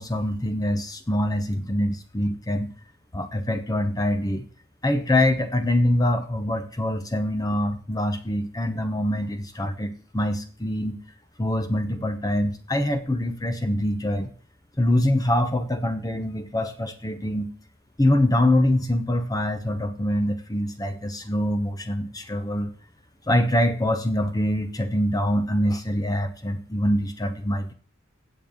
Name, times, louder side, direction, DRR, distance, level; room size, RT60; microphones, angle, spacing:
voice 1, 0.0-2.7 3.1-4.4 4.8-11.0 11.4-14.3 14.8-17.5 18.0-22.7 23.3-27.7, left 1 dB, 20° left, 8 dB, 0.9 m, -24 dB
16.5 x 7.2 x 3.7 m, 0.41 s
head